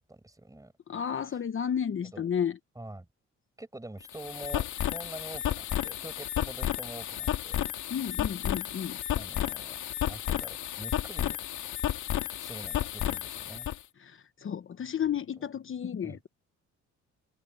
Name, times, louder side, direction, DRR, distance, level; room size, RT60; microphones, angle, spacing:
voice 1, 0.0-0.7 2.1-2.3 2.8-3.1 3.6-7.6 9.2-9.8 10.1-11.4 12.4-13.7 16.0-16.2, right 2 dB, 10° right, 6.5 m, -45 dB
voice 2, 0.9-2.6 7.9-9.0 14.0-16.3, left 8 dB, 45° left, 1.0 m, -32 dB
sound 1, 4.0-13.8, left 12 dB, 75° left, 2.1 m, -32 dB
cardioid pair, 90°, 30 cm